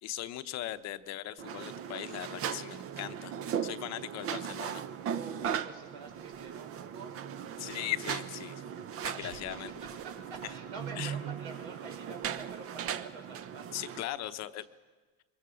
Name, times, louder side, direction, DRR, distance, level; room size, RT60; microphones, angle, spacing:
voice 1, 0.0-3.3 3.6-4.8 7.6-8.6 9.0-9.7 11.0-11.1 13.7-14.6, left 14 dB, 50° left, 11 dB, 0.9 m, -39 dB
sound 1, 1.4-14.0, right 8 dB, 40° right, 0.8 m, -38 dB
voice 2, 5.1-7.2 9.0-14.6, right 4 dB, 85° right, 2 dB, 5.4 m, -48 dB
23.0 x 21.5 x 6.4 m, 1.4 s
supercardioid pair, 120°, 34 cm